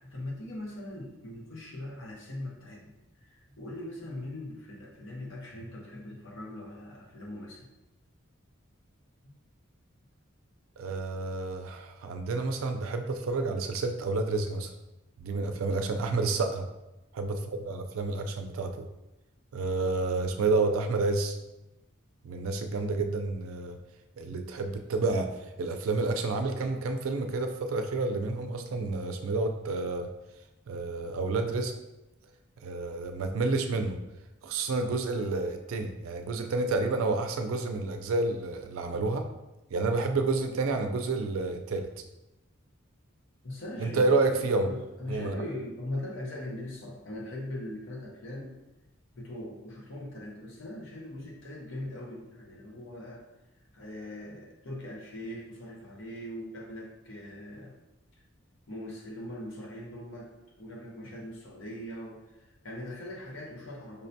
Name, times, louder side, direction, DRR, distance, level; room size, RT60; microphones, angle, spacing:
voice 1, 0.0-7.7 15.5-15.7 43.4-48.6 49.1-53.2 53.7-57.8 58.7-64.1, left 1 dB, 65° left, -1 dB, 0.7 m, -41 dB
voice 2, 10.8-14.7 15.2-16.7 17.1-18.9 19.5-21.4 22.2-23.8 24.2-25.3 25.6-30.1 30.7-31.7 32.6-34.0 34.4-39.2 39.7-41.9 43.8-44.7 45.1-45.4, right 3 dB, 85° right, 6 dB, 0.4 m, -29 dB
5.3 x 2.1 x 2.7 m, 0.97 s
head